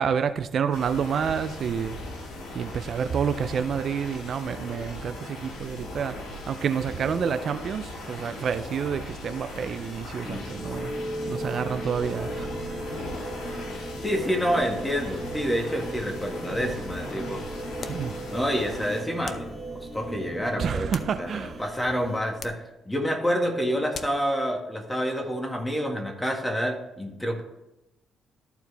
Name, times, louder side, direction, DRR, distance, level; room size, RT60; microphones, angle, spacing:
voice 1, 0.0-2.0 2.5-6.2 6.5-10.9 11.3-12.9 17.9-18.1 20.6-21.6, right 7 dB, 60° right, 10 dB, 0.4 m, -29 dB
sound 1, 0.7-19.0, left 2 dB, 80° left, 2.3 m, -39 dB
sound 2, 10.2-22.2, right 1 dB, 25° left, 2.7 m, -36 dB
voice 2, 14.0-17.4 18.3-27.4, equal, 10° left, 2 dB, 1.8 m, -28 dB
sound 3, 17.8-18.1 19.2-19.6 20.6-21.5 22.4-22.7 23.9-24.3, left 6 dB, 55° left, 0.6 m, -41 dB
13.5 x 4.6 x 3.4 m, 0.94 s
cardioid pair, 90°, 0 cm